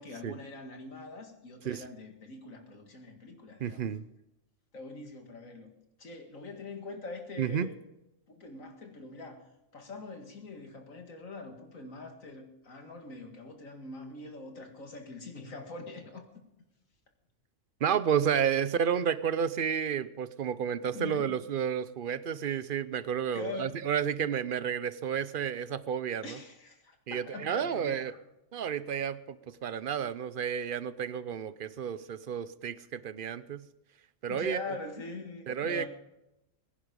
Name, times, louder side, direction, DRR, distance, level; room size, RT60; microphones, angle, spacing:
voice 1, 0.0-3.8 4.7-5.7 6.0-7.8 8.3-9.5 9.7-16.3 20.9-21.4 23.3-23.8 26.2-28.2 34.3-35.9, left 3 dB, 90° left, 4 dB, 2.4 m, -43 dB
voice 2, 3.6-4.0 7.4-7.7 17.8-26.4 27.1-28.1 28.5-33.6 34.2-34.6 35.5-35.9, right 8 dB, 50° right, 15 dB, 0.7 m, -31 dB
21.0 x 10.5 x 5.2 m, 0.89 s
omnidirectional pair, 1.3 m